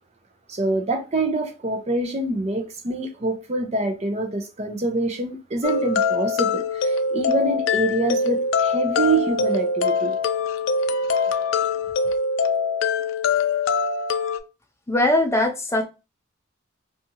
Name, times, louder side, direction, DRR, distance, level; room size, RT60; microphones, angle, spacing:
voice 1, 0.5-10.2, right 2 dB, 35° right, 0.5 m, -25 dB
sound 1, 5.6-14.4, left 4 dB, 85° left, 0.4 m, -23 dB
voice 2, 14.9-15.9, left 1 dB, 15° left, 0.5 m, -20 dB
2.7 x 2.4 x 2.7 m
head